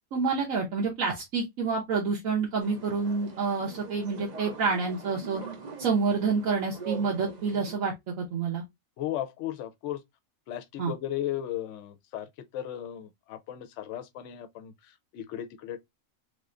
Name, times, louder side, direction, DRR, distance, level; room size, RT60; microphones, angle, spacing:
voice 1, 0.1-5.4 5.8-8.6 10.8-10.9, right 5 dB, 75° right, 1.3 m, -28 dB
sound 1, 2.6-7.8, right 5 dB, 45° right, 0.6 m, -43 dB
voice 2, 9.0-10.0 10.5-15.8, left 12 dB, 70° left, 0.9 m, -36 dB
3.4 x 3.3 x 2.4 m
omnidirectional pair, 1.4 m